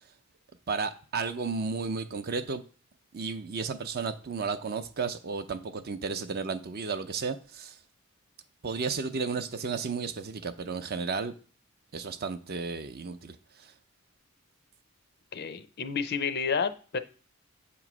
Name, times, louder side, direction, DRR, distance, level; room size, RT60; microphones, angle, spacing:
voice 1, 0.7-2.6 3.1-7.8 8.6-11.3 11.9-13.7, right 4 dB, 45° right, 0.5 m, -33 dB
voice 2, 15.3-17.0, left 6 dB, 45° left, 0.5 m, -30 dB
7.4 x 3.0 x 6.0 m
head